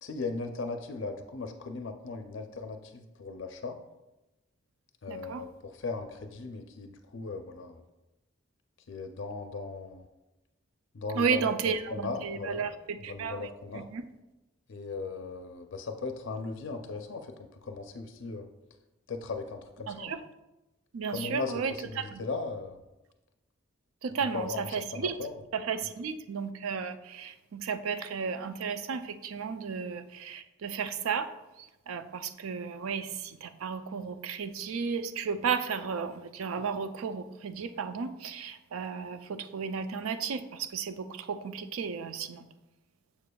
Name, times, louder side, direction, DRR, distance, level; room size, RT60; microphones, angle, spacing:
voice 1, 0.0-3.8 5.0-7.8 8.9-10.1 10.9-12.7 13.1-13.9 14.7-17.3 17.6-18.5 19.1-20.2 21.1-22.8 24.3-25.4 25.8-25.9, left 3 dB, 65° left, 6 dB, 0.4 m, -37 dB
voice 2, 5.1-5.4 11.1-14.0 19.9-20.2 20.9-22.2 24.0-25.1 25.5-31.3 31.6-42.5, right 6 dB, 85° right, 10 dB, 0.4 m, -34 dB
6.9 x 6.7 x 2.3 m, 1.0 s
head